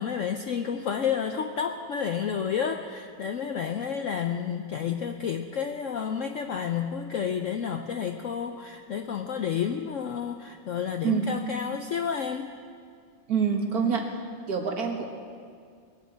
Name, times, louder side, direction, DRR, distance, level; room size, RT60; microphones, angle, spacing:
voice 1, 0.0-12.5, left 7 dB, 90° left, 6 dB, 0.6 m, -30 dB
voice 2, 13.3-14.1 14.5-15.1, right 6 dB, 50° right, 2 dB, 1.9 m, -26 dB
20.5 x 7.4 x 8.6 m, 2.2 s
omnidirectional pair, 2.1 m